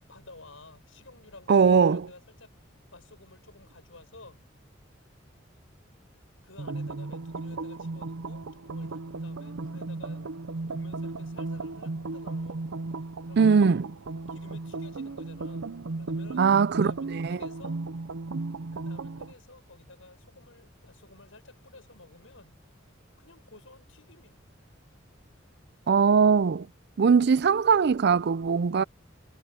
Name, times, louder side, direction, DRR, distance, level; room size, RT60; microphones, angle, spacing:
voice 1, 0.1-4.4 6.4-12.6 13.2-13.7 14.3-16.5 16.7-17.8 18.7-22.6 23.2-24.4, left 2 dB, 80° left, 6.7 m, -52 dB
voice 2, 1.5-2.1 13.4-13.9 16.4-17.4 25.9-26.7 27.0-28.8, right 5 dB, 55° right, 0.4 m, -21 dB
sound 1, 6.6-19.3, right 3 dB, 85° right, 0.7 m, -35 dB
head